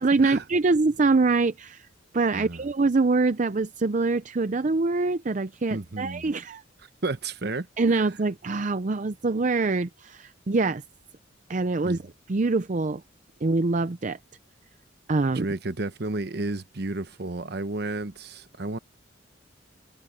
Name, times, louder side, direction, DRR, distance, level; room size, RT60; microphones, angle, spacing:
voice 1, 0.0-1.9 2.1-6.6 7.8-10.8 11.5-12.0 12.3-13.0 13.4-14.2 15.1-15.5, right 3 dB, 40° right, 0.5 m, -24 dB
voice 2, 5.7-6.2 7.0-7.7 11.8-12.0 15.3-18.8, right 2 dB, 60° right, 1.1 m, -31 dB
head